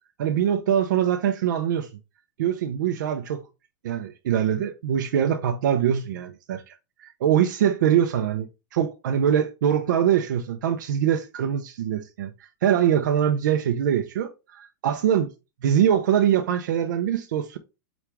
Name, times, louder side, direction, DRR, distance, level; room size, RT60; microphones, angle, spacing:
voice 1, 0.2-1.9 2.4-3.4 3.8-12.3 12.6-14.3 14.8-15.3 15.6-17.6, right 9 dB, 75° right, 0.5 m, -23 dB
5.9 x 2.4 x 3.4 m
hypercardioid pair, 135°, 10 cm